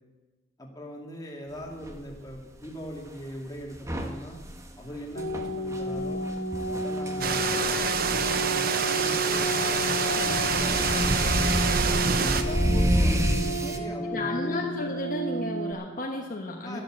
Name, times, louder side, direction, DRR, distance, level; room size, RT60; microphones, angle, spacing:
voice 1, 0.6-4.4 4.8-6.2 6.6-11.6 12.1-14.5 16.6-16.8, equal, 20° left, -1 dB, 2.5 m, -39 dB
sound 1, 1.8-2.0 3.7-13.8, equal, 15° right, 1.2 m, -29 dB
sound 2, 5.1-15.7, equal, 65° left, 1.7 m, -32 dB
sound 3, 7.2-12.4, right 6 dB, 50° right, 0.9 m, -27 dB
voice 2, 14.1-16.8, left 2 dB, 45° left, 0 dB, 1.3 m, -33 dB
12.0 x 11.0 x 7.5 m, 1.3 s
head